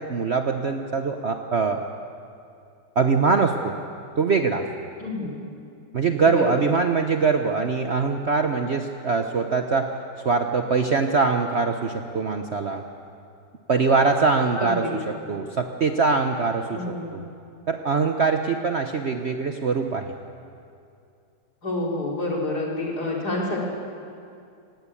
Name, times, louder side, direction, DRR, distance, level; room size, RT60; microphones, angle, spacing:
voice 1, 0.0-1.9 3.0-3.8 4.2-4.7 5.9-9.9 10.2-12.8 13.7-14.8 15.3-16.8 17.1-17.2 17.7-20.1, right 4 dB, 50° right, 5 dB, 0.9 m, -23 dB
voice 2, 5.0-5.4 6.2-6.7 14.6-14.9 16.7-17.1 21.6-23.6, left 2 dB, 60° left, -3 dB, 4.1 m, -28 dB
18.5 x 17.0 x 8.5 m, 2.5 s
omnidirectional pair, 1.9 m